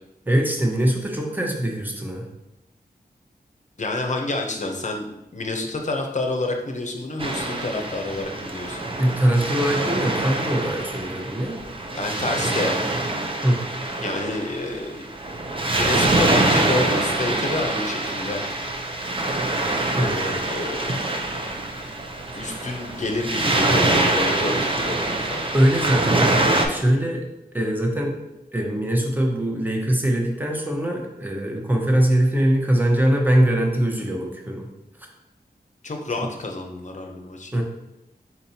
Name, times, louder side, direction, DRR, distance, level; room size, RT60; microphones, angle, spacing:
voice 1, 0.3-2.3 9.0-11.6 13.4-13.6 20.0-20.1 22.5-22.6 25.5-27.2 27.5-28.2 28.5-34.7 37.5-37.6, right 1 dB, 10° right, 0 dB, 0.9 m, -22 dB
voice 2, 3.8-8.8 11.9-12.8 14.0-15.1 15.7-18.4 19.9-21.0 22.3-25.5 35.8-37.6, left 2 dB, 45° left, 3 dB, 0.7 m, -28 dB
Waves surf, 7.2-26.7, right 2 dB, 30° right, 0.6 m, -24 dB
4.3 x 4.2 x 2.8 m, 0.89 s
wide cardioid pair, 70°, 17 cm